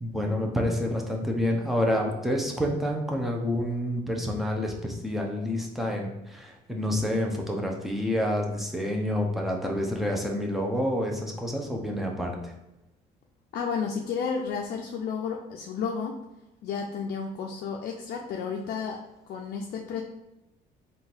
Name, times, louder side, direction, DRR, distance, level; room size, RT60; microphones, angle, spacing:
voice 1, 0.0-12.5, left 1 dB, ahead, 0 dB, 0.8 m, -28 dB
voice 2, 13.5-16.2 16.6-19.0 19.3-20.0, left 6 dB, 65° left, 0 dB, 0.5 m, -32 dB
3.7 x 2.6 x 4.4 m, 0.95 s
cardioid pair, 110°, 17 cm